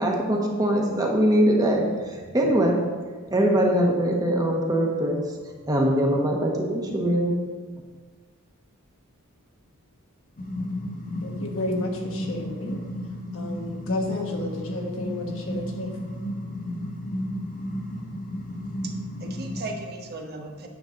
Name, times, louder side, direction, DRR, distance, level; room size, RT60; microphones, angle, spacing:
voice 1, 0.0-2.8 3.3-5.2 5.7-7.3, right 1 dB, 15° right, -1 dB, 1.3 m, -22 dB
sound 1, 10.4-19.7, left 1 dB, 40° left, 1.1 m, -32 dB
voice 2, 11.2-12.8 13.3-15.9, left 1 dB, 65° left, 1 dB, 1.3 m, -32 dB
voice 3, 18.8-20.7, right 2 dB, 45° right, 3 dB, 1.0 m, -37 dB
9.2 x 6.8 x 3.9 m, 1.4 s
head